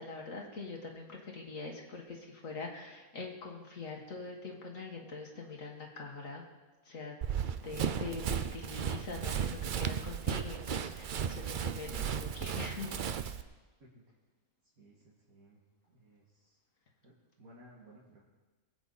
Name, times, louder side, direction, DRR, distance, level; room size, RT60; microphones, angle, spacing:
voice 1, 0.0-6.4 6.9-7.2 7.6-13.0, left 4 dB, 65° left, -1 dB, 1.9 m, -43 dB
Run, 7.2-13.4, right 8 dB, 65° right, 0.5 m, -35 dB
voice 2, 14.8-15.6 15.9-16.6 17.0-18.2, right 1 dB, 90° right, -6 dB, 2.5 m, -59 dB
21.0 x 8.1 x 4.1 m, 1.2 s
omnidirectional pair, 1.5 m